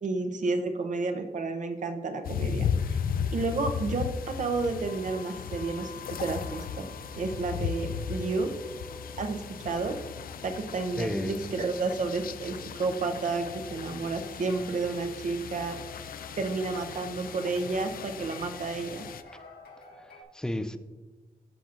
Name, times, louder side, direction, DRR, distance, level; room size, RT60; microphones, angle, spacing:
voice 1, 0.0-3.0 3.3-6.9 7.1-8.5 9.2-9.9 10.4-15.8 16.4-19.0, right 3 dB, 55° right, 6 dB, 0.7 m, -31 dB
sound 1, 2.3-19.2, left 7 dB, 70° left, 0.4 m, -36 dB
sound 2, 2.7-20.2, left 2 dB, 85° left, 1.4 m, -49 dB
voice 2, 11.0-11.4 20.0-20.8, left 1 dB, 5° left, 10 dB, 0.3 m, -32 dB
13.0 x 5.8 x 2.5 m, 1.3 s
wide cardioid pair, 155°, 16 cm